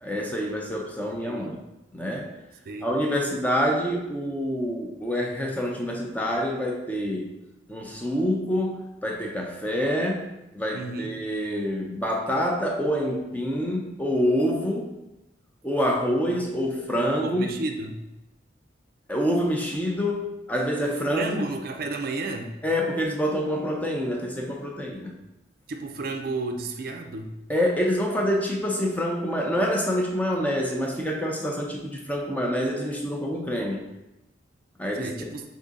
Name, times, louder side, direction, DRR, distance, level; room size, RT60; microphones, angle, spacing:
voice 1, 0.0-1.6 1.9-2.3 2.8-7.3 7.7-10.3 10.5-14.9 15.6-17.5 19.1-21.5 22.6-25.1 27.5-33.8 34.8-35.3, equal, 10° left, 0 dB, 0.5 m, -26 dB
voice 2, 1.2-1.6 2.7-2.9 10.7-11.2 16.3-16.4 17.2-18.0 21.1-22.5 25.7-27.3 35.0-35.4, right 3 dB, 55° right, 4 dB, 0.4 m, -32 dB
3.7 x 3.7 x 3.9 m, 0.96 s
head